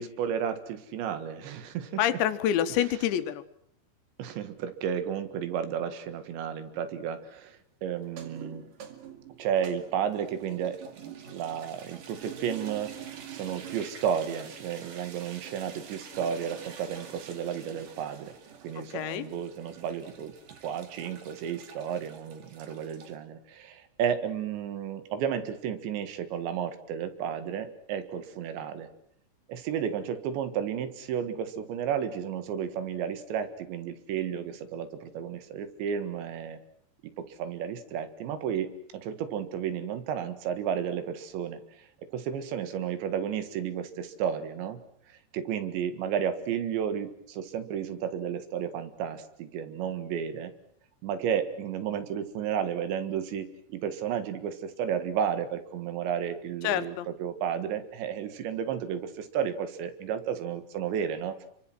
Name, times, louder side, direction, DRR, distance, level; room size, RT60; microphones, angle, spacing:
voice 1, 0.0-2.2 4.2-8.6 9.4-10.8 11.3-13.0 13.3-18.3 18.6-20.4 20.6-28.9 29.5-36.6 37.2-44.8 45.1-50.5 51.0-61.5, right 8 dB, 85° right, 10 dB, 4.1 m, -32 dB
voice 2, 2.0-3.4 18.8-19.3 56.6-57.1, left 11 dB, 90° left, 11 dB, 3.5 m, -27 dB
sound 1, 8.0-23.2, right 8 dB, 55° right, 3.7 m, -47 dB
28.5 x 24.0 x 6.3 m, 0.65 s
omnidirectional pair, 5.0 m